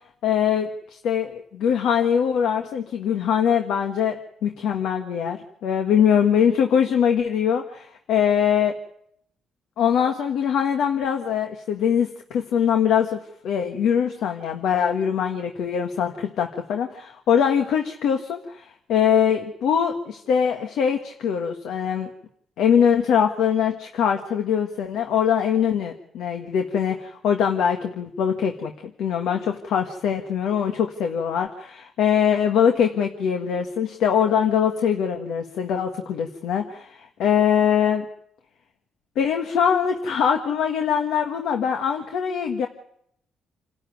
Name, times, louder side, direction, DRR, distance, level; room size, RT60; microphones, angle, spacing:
voice 1, 0.2-4.2 4.4-8.8 9.8-22.1 22.6-28.7 29.0-38.0 39.1-42.7, left 8 dB, 80° left, 4 dB, 1.5 m, -22 dB
27.5 x 12.5 x 9.3 m, 0.74 s
cardioid pair, 90°, 0 cm